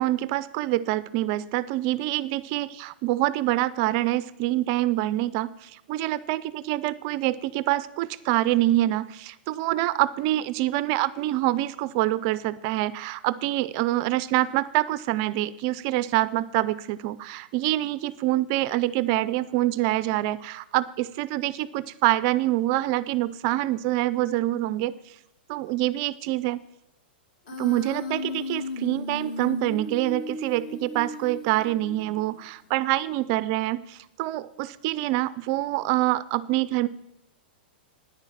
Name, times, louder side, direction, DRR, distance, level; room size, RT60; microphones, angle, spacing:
voice 1, 0.0-24.9 25.5-26.6 27.6-36.9, right 16 dB, 30° right, 17 dB, 0.4 m, -26 dB
Human voice, 27.5-32.4, left 2 dB, 55° left, 2.3 m, -35 dB
9.8 x 9.8 x 7.3 m, 0.84 s
supercardioid pair, 170°, 5 cm